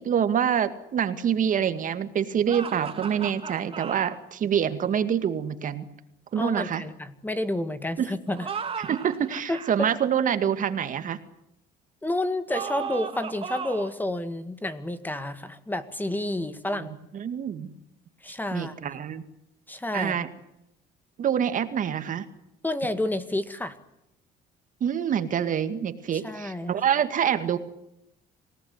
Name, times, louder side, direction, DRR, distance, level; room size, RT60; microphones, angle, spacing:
voice 1, 0.0-5.9 6.3-6.8 8.0-8.1 8.8-11.2 16.7-16.9 17.1-17.7 18.5-19.2 19.9-20.3 21.2-22.3 24.8-27.6, right 8 dB, 50° right, 10 dB, 2.1 m, -26 dB
sound 1, 2.5-4.2 8.3-9.7 12.5-14.0, right 6 dB, 35° right, 2.8 m, -35 dB
voice 2, 6.3-8.5 9.5-9.9 12.0-16.9 18.2-19.0 19.7-20.2 22.6-23.8 26.1-26.7, left 1 dB, 10° left, 11 dB, 1.9 m, -30 dB
26.5 x 18.0 x 9.7 m, 0.83 s
cardioid pair, 110°, 17 cm